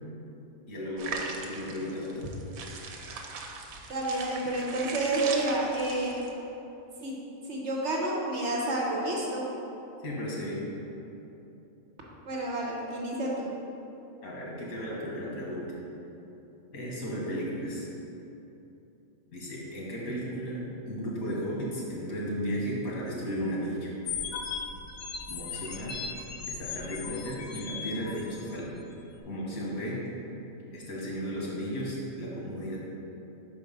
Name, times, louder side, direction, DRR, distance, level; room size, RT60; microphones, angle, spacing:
voice 1, 0.7-2.2 10.0-10.7 14.2-15.6 16.7-17.9 19.3-23.9 25.3-25.9 26.5-28.7 29.3-30.0 30.7-32.8, equal, 85° left, -5 dB, 1.8 m, -34 dB
sound 1, 1.0-6.3, right 4 dB, 90° right, 1.1 m, -39 dB
voice 2, 3.9-6.2 7.0-7.1 7.5-9.5 12.3-13.5, right 2 dB, 55° right, -3 dB, 1.2 m, -29 dB
sound 2, 24.0-28.6, left 6 dB, 65° left, 0.8 m, -37 dB
5.5 x 4.6 x 5.2 m, 3.0 s
omnidirectional pair, 1.5 m